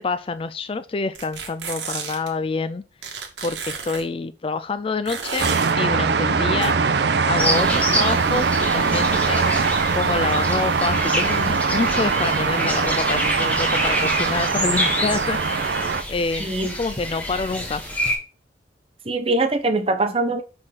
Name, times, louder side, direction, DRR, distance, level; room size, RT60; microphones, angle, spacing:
voice 1, 0.0-2.8 3.4-6.8 7.2-9.5 9.9-15.4 16.1-16.5 16.8-17.8, left 4 dB, 30° left, 0.3 m, -27 dB
sound 1, 1.1-2.3 3.0-4.0 5.1-5.7 6.6-6.7, right 6 dB, 80° right, 1.5 m, -31 dB
sound 2, 5.4-16.0, right 5 dB, 65° right, 0.6 m, -22 dB
sound 3, 7.4-18.2, equal, 10° left, 1.5 m, -27 dB
voice 2, 16.4-16.7 19.0-20.4, right 2 dB, 30° right, 0.9 m, -22 dB
4.8 x 4.4 x 5.7 m
head